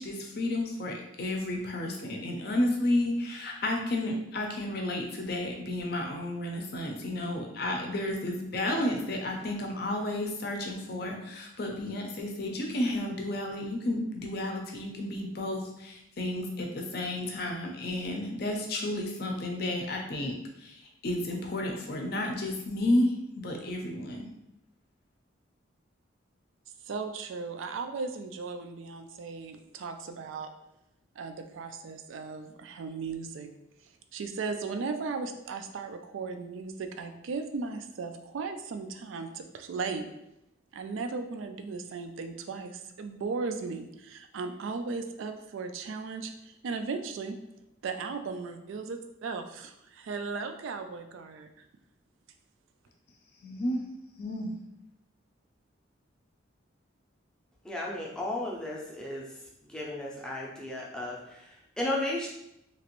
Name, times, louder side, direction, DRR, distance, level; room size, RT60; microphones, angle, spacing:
voice 1, 0.0-24.3 53.4-53.8 54.2-54.5, left 1 dB, 50° left, 2 dB, 0.5 m, -32 dB
voice 2, 26.9-30.5 31.2-33.5 34.1-40.1 40.7-47.4 47.8-51.5, right 4 dB, 80° right, 7 dB, 0.3 m, -36 dB
voice 3, 57.6-59.3 59.7-61.5 61.8-62.3, left 1 dB, 5° left, -4 dB, 0.5 m, -34 dB
2.9 x 2.5 x 3.0 m, 0.83 s
head